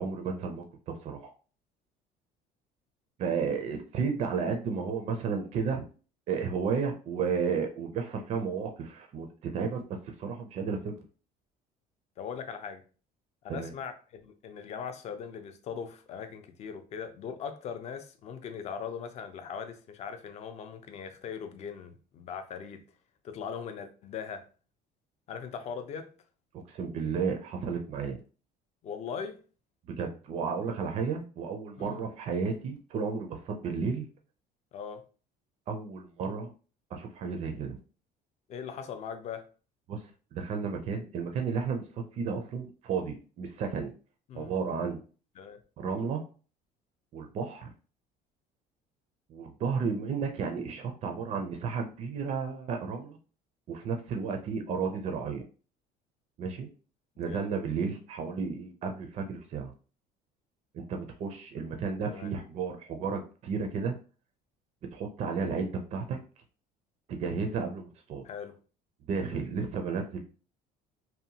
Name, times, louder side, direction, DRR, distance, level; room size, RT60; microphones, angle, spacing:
voice 1, 0.0-1.3 3.2-5.9 6.3-11.0 13.5-13.7 26.5-28.2 29.9-34.1 35.7-36.5 36.9-37.8 39.9-40.0 40.3-43.9 44.3-45.0 45.8-46.2 47.1-47.7 49.3-53.2 53.7-55.4 56.4-56.7 57.2-59.7 60.7-64.0 64.9-66.2 67.1-68.2 69.1-70.2, right 5 dB, 40° right, 0.4 m, -33 dB
voice 2, 12.2-12.8 13.4-22.8 23.2-24.4 25.3-26.1 28.8-29.4 31.8-32.0 34.7-35.0 38.5-39.4 44.3-44.6 45.4-45.6 57.3-57.5 62.0-62.3 68.2-68.5, left 7 dB, 40° left, 0.4 m, -40 dB
2.7 x 2.1 x 2.7 m
cardioid pair, 145°, 17 cm